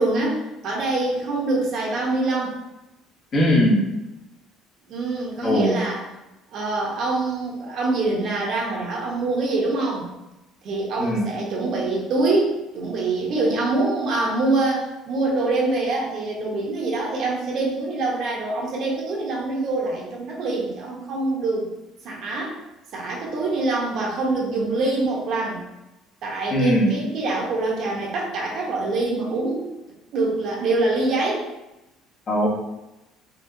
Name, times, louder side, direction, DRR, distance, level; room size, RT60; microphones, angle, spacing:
voice 1, 0.0-2.6 4.9-6.0 6.5-10.1 10.6-21.7 22.0-22.6 22.9-25.6 26.2-29.7 30.1-31.5, right 2 dB, 50° right, -2 dB, 1.0 m, -25 dB
voice 2, 3.3-3.8 5.4-5.8 11.0-11.2 26.5-26.9 32.3-32.5, equal, 30° left, -4 dB, 1.1 m, -19 dB
4.4 x 3.0 x 2.7 m, 0.98 s
cardioid pair, 150°, 0 cm